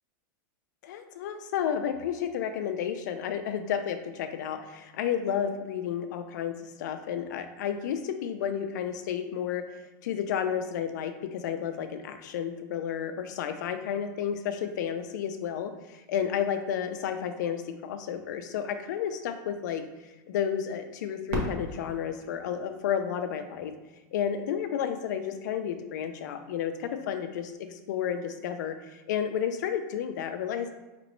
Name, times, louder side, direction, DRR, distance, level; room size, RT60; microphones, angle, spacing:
voice 1, 0.8-9.6 10.0-23.7 24.1-30.7, left 8 dB, 60° left, 8 dB, 0.5 m, -32 dB
Fireworks, 21.3-24.0 24.7-24.8 25.5-26.0 27.9-28.0, right 1 dB, 50° right, 1.0 m, -38 dB
5.0 x 3.0 x 3.1 m, 1.1 s
supercardioid pair, 175°, 11 cm